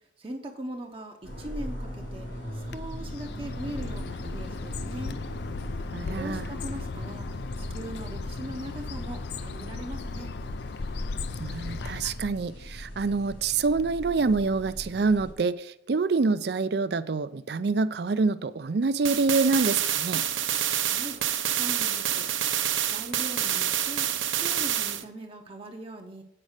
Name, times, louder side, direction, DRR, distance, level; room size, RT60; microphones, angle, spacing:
voice 1, 0.2-5.2 6.1-10.3 20.9-21.2 21.6-22.3 22.9-26.2, right 1 dB, 30° right, 2 dB, 0.7 m, -40 dB
sound 1, 1.2-15.3, equal, 80° left, 4.2 m, -39 dB
Bird, 2.7-12.4, left 4 dB, 60° left, 0.4 m, -37 dB
voice 2, 5.9-6.5 11.4-20.2, right 4 dB, 55° right, 14 dB, 0.4 m, -26 dB
sound 2, 19.0-25.0, right 10 dB, 90° right, 0.8 m, -27 dB
8.7 x 5.3 x 6.5 m, 0.75 s
head